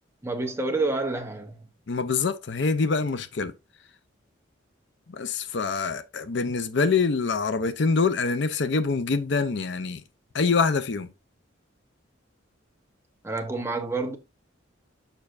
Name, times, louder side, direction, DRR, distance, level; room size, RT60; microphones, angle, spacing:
voice 1, 0.2-1.6 13.2-14.2, right 3 dB, 15° right, 0.9 m, -28 dB
voice 2, 1.9-3.5 5.1-10.0 10.3-11.1, left 4 dB, 60° left, 0.5 m, -25 dB
6.7 x 5.8 x 2.5 m
head